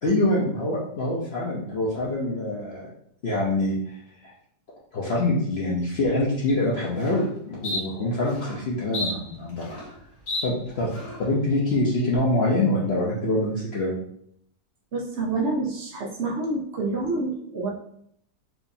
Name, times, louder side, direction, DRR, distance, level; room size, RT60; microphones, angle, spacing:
voice 1, 0.0-2.9 3.2-4.3 4.9-9.7 10.4-10.9 11.2-14.0, left 1 dB, 80° left, -5 dB, 0.5 m, -25 dB
sound 1, 6.5-6.6 7.0-7.3 7.6-7.8 8.3-8.6 8.9-10.0 10.3-10.4 10.9-11.3, left 2 dB, 50° left, 1.1 m, -32 dB
voice 2, 14.9-17.7, right 3 dB, 85° right, -3 dB, 0.6 m, -27 dB
4.7 x 2.6 x 2.6 m, 0.69 s
omnidirectional pair, 2.0 m